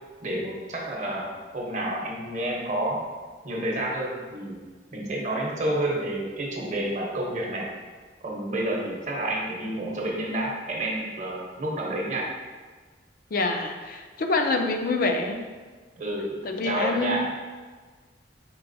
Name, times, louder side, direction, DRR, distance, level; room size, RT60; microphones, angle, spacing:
voice 1, 0.2-3.0 3.4-4.6 4.9-7.7 8.2-12.3 16.0-16.3 16.6-17.3, right 1 dB, 40° right, -2 dB, 0.8 m, -29 dB
voice 2, 13.3-15.4 16.4-17.2, left 3 dB, 50° left, 4 dB, 0.4 m, -26 dB
4.5 x 3.8 x 2.6 m, 1.4 s
head